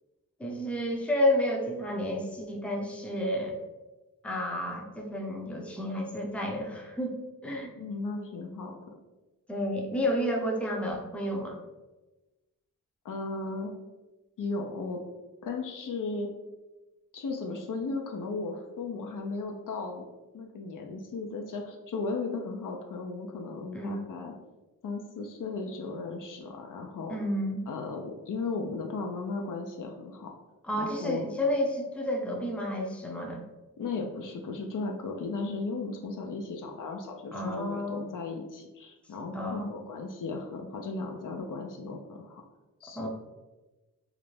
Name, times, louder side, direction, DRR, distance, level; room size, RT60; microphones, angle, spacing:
voice 1, 0.4-3.6 4.2-7.1 7.4-7.7 9.5-11.6 23.7-24.1 27.1-27.6 30.7-33.5 37.3-38.0 39.3-39.7 42.9-43.1, left 1 dB, 5° left, 0 dB, 0.5 m, -30 dB
voice 2, 7.8-8.8 13.0-13.7 14.4-15.0 15.4-16.3 17.1-20.1 20.3-24.3 24.8-27.2 27.7-30.3 30.8-31.3 33.8-42.4 42.8-43.1, left 3 dB, 60° left, 2 dB, 0.5 m, -36 dB
2.5 x 2.1 x 3.1 m, 1.1 s
cardioid pair, 50°, 36 cm